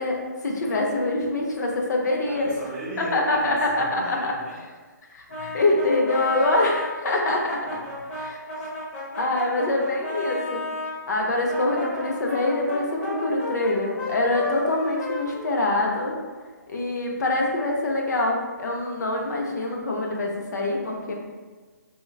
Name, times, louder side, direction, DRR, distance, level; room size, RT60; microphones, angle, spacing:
voice 1, 0.0-2.5 3.0-4.3 5.1-7.7 8.2-8.4 9.2-10.6 11.1-16.1 16.7-21.1, left 2 dB, 65° left, 0 dB, 0.6 m, -25 dB
voice 2, 2.3-4.7 5.3-5.6 7.6-8.2, right 2 dB, 15° right, -6 dB, 0.5 m, -38 dB
Brass instrument, 5.3-10.9 11.4-16.2, left 2 dB, 40° left, 0.9 m, -33 dB
3.7 x 2.1 x 2.3 m, 1.4 s
hypercardioid pair, 155°, 10 cm